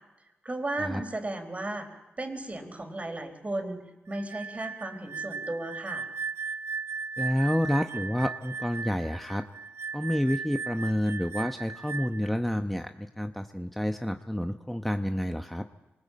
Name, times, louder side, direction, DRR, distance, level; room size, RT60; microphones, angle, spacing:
voice 1, 0.4-1.9 2.2-6.1, right 2 dB, 30° right, 6 dB, 4.1 m, -35 dB
sound 1, 4.1-12.3, right 5 dB, 70° right, 0.8 m, -37 dB
voice 2, 7.2-9.5 9.9-15.7, equal, 5° left, 7 dB, 1.0 m, -29 dB
23.0 x 20.0 x 8.6 m, 1.1 s
cardioid pair, 50°, 4 cm